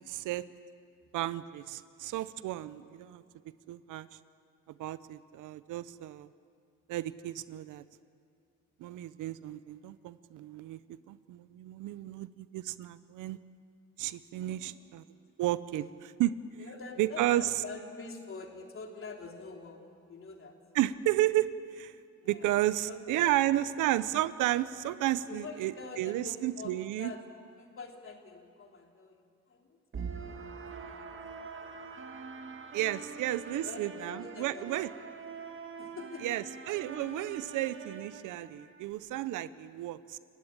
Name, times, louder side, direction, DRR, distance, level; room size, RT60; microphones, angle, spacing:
voice 1, 0.1-0.4 1.1-3.2 3.7-4.1 4.8-6.3 6.9-7.8 8.8-10.8 11.1-13.4 14.0-15.0 15.4-16.4 17.0-17.5 20.7-21.9 22.3-27.1 32.7-34.9 36.2-40.2, right 14 dB, 90° right, 15 dB, 0.8 m, -32 dB
voice 2, 14.4-14.9 16.6-20.6 22.2-22.5 22.9-23.8 25.3-29.8 30.2-30.6 30.8-31.0 31.3-31.5 33.3-34.7 35.8-36.4, left 4 dB, 45° left, 2 dB, 3.4 m, -46 dB
sound 1, 29.9-38.9, right 4 dB, 40° right, 1.8 m, -44 dB
29.0 x 15.5 x 8.8 m, 2.3 s
cardioid pair, 90°, 30 cm